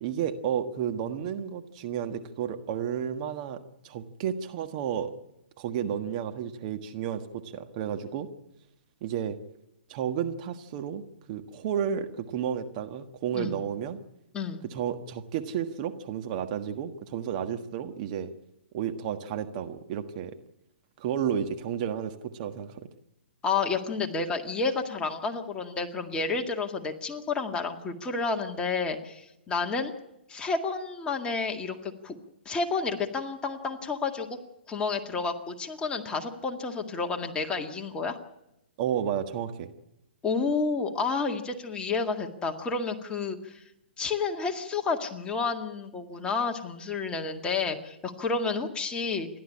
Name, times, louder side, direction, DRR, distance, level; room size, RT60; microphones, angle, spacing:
voice 1, 0.0-5.1 5.6-8.3 9.0-9.4 9.9-11.0 11.3-14.0 14.7-18.3 18.7-20.4 21.0-22.9 38.8-39.7, right 8 dB, 40° right, 7 dB, 1.5 m, -32 dB
voice 2, 23.4-29.9 30.3-32.2 32.5-34.4 34.7-38.2 40.2-43.6 44.0-49.3, left 4 dB, 15° left, 3 dB, 2.0 m, -30 dB
28.5 x 12.0 x 8.7 m, 0.87 s
figure-of-eight pair, 125°, 6 cm